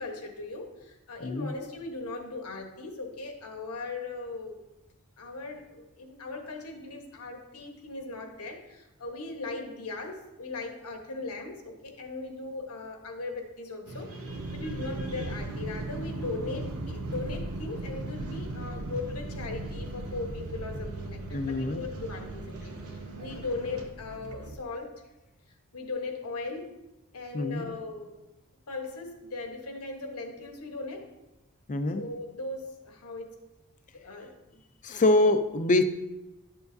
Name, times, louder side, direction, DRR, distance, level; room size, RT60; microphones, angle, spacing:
voice 1, 0.0-4.6 5.2-14.1 14.5-24.9 25.7-26.8 27.1-28.2 28.7-31.1 32.0-33.4 33.9-34.6 35.0-35.3, left 3 dB, 90° left, 4 dB, 1.2 m, -38 dB
voice 2, 1.2-1.5 21.3-21.8 27.3-27.7 31.7-32.0 34.8-35.8, left 2 dB, 35° left, 9 dB, 0.5 m, -25 dB
sound 1, 13.9-23.9, right 2 dB, 70° right, 1.1 m, -43 dB
sound 2, 14.3-24.6, right 2 dB, 90° right, 0.7 m, -38 dB
11.0 x 7.1 x 2.7 m, 0.97 s
head